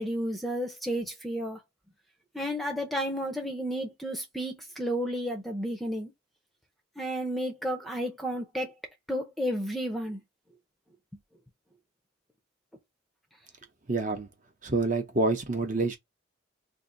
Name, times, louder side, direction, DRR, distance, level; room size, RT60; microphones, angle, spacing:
voice 1, 0.0-1.6 2.3-6.1 7.0-8.7 9.1-10.2, equal, ahead, 0.6 m, -32 dB
voice 2, 13.9-14.3 14.6-16.0, right 3 dB, 40° right, 0.7 m, -27 dB
2.8 x 2.6 x 3.8 m
head